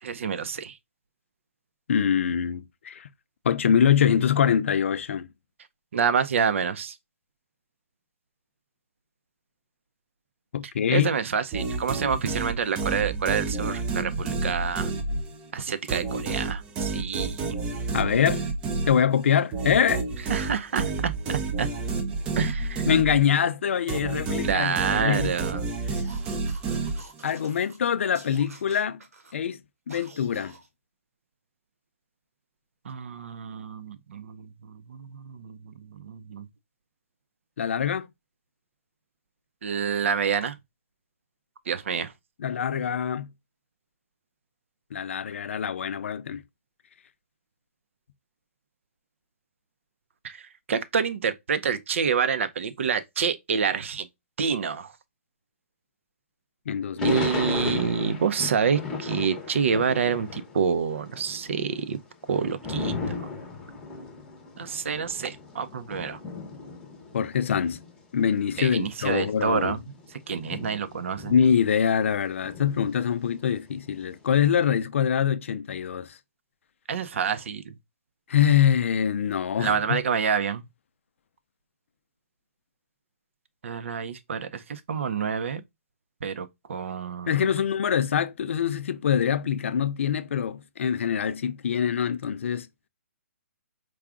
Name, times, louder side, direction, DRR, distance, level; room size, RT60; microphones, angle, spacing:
voice 1, 0.0-0.8 5.9-7.0 10.9-14.9 15.5-17.6 20.3-21.7 22.4-22.9 24.4-25.7 32.8-36.5 39.6-40.6 41.7-42.1 50.2-54.1 54.4-54.9 57.0-62.0 62.3-63.2 64.6-66.2 68.6-69.8 70.1-71.3 76.9-77.8 79.6-80.6 83.6-85.6 86.2-87.4, right 6 dB, 60° right, 0.6 m, -28 dB
voice 2, 1.9-3.1 3.4-5.3 10.5-11.1 17.9-18.5 18.9-20.0 22.9-25.3 27.2-29.0 29.3-29.6 29.9-30.6 37.6-38.1 42.4-43.3 44.9-46.4 56.7-57.3 57.6-57.9 67.1-67.8 68.1-69.8 71.3-76.2 78.3-80.0 87.3-92.7, left 8 dB, 60° left, 0.5 m, -24 dB
sound 1, 11.5-15.5 15.9-23.5 23.9-27.4, right 4 dB, 15° right, 0.5 m, -30 dB
sound 2, 25.9-27.8 28.1-29.4 29.9-30.7, right 3 dB, 90° right, 1.4 m, -49 dB
Thunder / Rain, 57.0-60.6 60.9-68.0 68.6-68.7 68.9-72.1 72.4-74.1, left 4 dB, 10° left, 0.9 m, -36 dB
4.8 x 2.3 x 3.6 m
hypercardioid pair, 160°, 8 cm